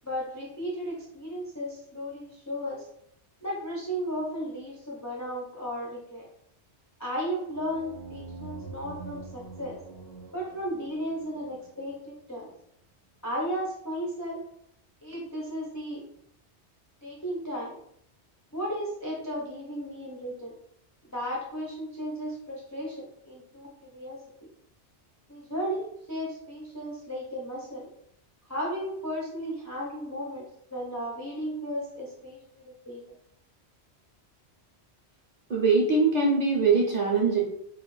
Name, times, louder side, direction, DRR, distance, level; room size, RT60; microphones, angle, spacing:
voice 1, 0.0-2.9 3.4-6.3 7.0-9.8 10.3-12.5 13.2-14.4 15.0-16.0 17.0-17.7 18.5-20.5 21.1-24.2 25.3-27.9 28.5-30.5 30.7-33.0, equal, 30° left, -4 dB, 0.3 m, -35 dB
sound 1, 7.5-12.0, right 4 dB, 85° right, 0.9 m, -45 dB
voice 2, 35.5-37.4, right 4 dB, 50° right, -2 dB, 0.6 m, -22 dB
2.4 x 2.4 x 3.1 m, 0.71 s
omnidirectional pair, 1.1 m